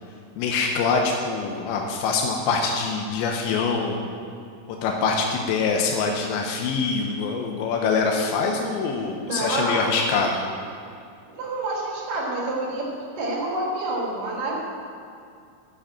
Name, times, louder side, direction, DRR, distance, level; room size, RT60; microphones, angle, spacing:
voice 1, 0.4-4.1 4.7-10.4, left 4 dB, 80° left, 1 dB, 2.8 m, -24 dB
voice 2, 9.3-10.0 11.3-14.5, right 2 dB, 60° right, -4 dB, 2.7 m, -28 dB
7.5 x 7.1 x 7.3 m, 2.4 s
omnidirectional pair, 5.5 m